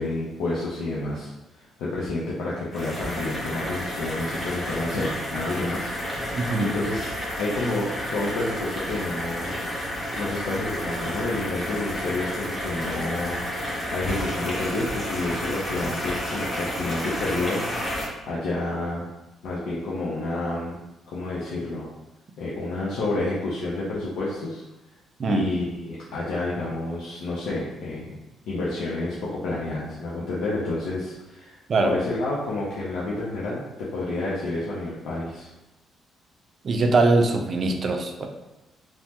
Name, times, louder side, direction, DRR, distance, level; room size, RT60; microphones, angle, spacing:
voice 1, 0.0-7.1 7.4-9.6 10.2-19.0 19.4-20.8 21.1-21.8 22.4-24.6 25.2-28.1 28.5-31.6 31.8-35.5, left 2 dB, 85° left, -7 dB, 0.5 m, -29 dB
sound 1, 2.7-18.1, equal, 30° left, 1.0 m, -31 dB
voice 2, 6.3-6.8 25.2-25.5 31.7-32.0 36.6-38.3, right 2 dB, 50° right, 4 dB, 0.4 m, -22 dB
3.2 x 2.0 x 2.8 m, 0.98 s
cardioid pair, 90°, 0 cm